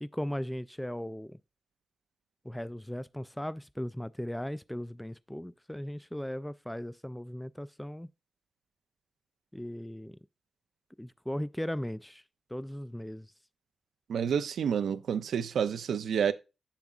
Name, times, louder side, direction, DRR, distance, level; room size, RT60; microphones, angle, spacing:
voice 1, 0.0-1.4 2.4-8.1 9.5-10.2 11.0-12.2 12.5-13.3, equal, 5° left, 0.3 m, -37 dB
voice 2, 14.1-16.3, right 7 dB, 85° right, 0.4 m, -29 dB
7.2 x 7.0 x 2.4 m
cardioid pair, 60°, 0 cm